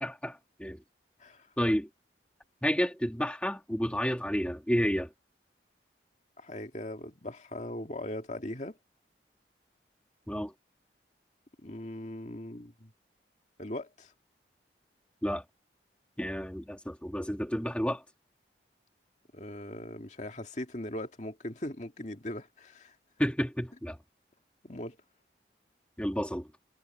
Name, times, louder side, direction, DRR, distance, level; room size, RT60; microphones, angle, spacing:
voice 1, 0.0-0.8 1.6-1.9 2.6-5.1 10.3-10.5 15.2-15.4 16.2-18.0 23.2-24.0 26.0-26.5, equal, 5° left, 2.0 m, -30 dB
voice 2, 6.4-8.8 11.6-12.9 13.6-14.1 19.3-22.9 24.6-25.0, left 1 dB, 40° left, 2.3 m, -40 dB
head